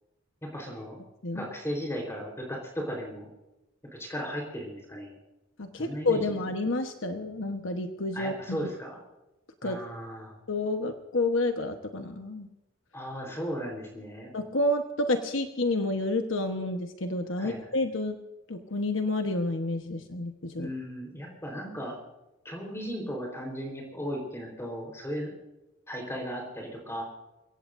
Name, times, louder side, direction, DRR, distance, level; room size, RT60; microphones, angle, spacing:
voice 1, 0.5-1.0 1.3-3.3 4.0-5.1 5.8-6.2 8.1-9.0 9.6-10.3 12.9-14.3 17.4-17.7 20.6-21.9 22.4-25.3 25.9-27.0, equal, 15° left, -1 dB, 4.2 m, -36 dB
voice 2, 5.6-8.7 9.6-9.8 10.5-12.5 14.3-18.2 18.5-20.7, left 2 dB, 70° left, 5 dB, 1.2 m, -29 dB
29.5 x 17.0 x 2.7 m, 0.98 s
head